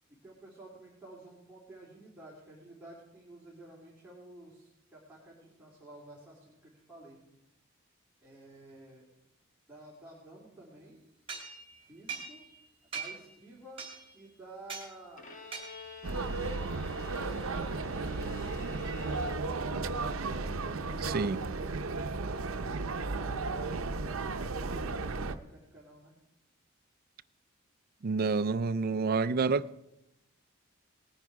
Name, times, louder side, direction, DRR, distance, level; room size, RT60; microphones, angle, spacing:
voice 1, 0.2-7.2 8.2-9.1 9.7-11.0 11.8-12.4 12.9-13.9 14.1-15.2 16.7-17.6 20.7-22.4 23.0-26.1, right 1 dB, 10° right, 3.0 m, -52 dB
sound 1, 11.3-12.6 12.9-13.3 13.8-14.2 14.7-14.9 15.5-16.0, right 5 dB, 30° right, 2.6 m, -42 dB
Bowed string instrument, 15.2-19.9, left 7 dB, 40° left, 1.2 m, -47 dB
sound 2, 16.0-25.4, right 3 dB, 85° right, 0.7 m, -34 dB
voice 2, 21.0-21.4 28.0-29.6, right 4 dB, 45° right, 0.4 m, -28 dB
19.0 x 9.6 x 4.8 m
head